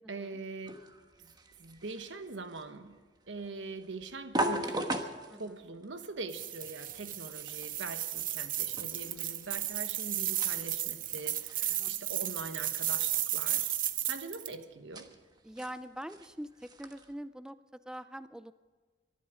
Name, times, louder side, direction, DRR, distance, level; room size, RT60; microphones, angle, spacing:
voice 1, 0.1-0.8 1.2-1.3 1.6-3.0 3.3-13.7 14.1-15.1, right 3 dB, 80° right, 8 dB, 1.3 m, -43 dB
sound 1, 0.6-17.1, right 1 dB, 25° right, 1.2 m, -41 dB
voice 2, 5.3-5.6 9.0-9.5 11.8-12.0 15.4-18.5, equal, 5° right, 13 dB, 0.4 m, -44 dB
sound 2, 6.3-14.5, right 12 dB, 50° right, 0.7 m, -34 dB
23.5 x 11.5 x 5.0 m, 1.4 s
head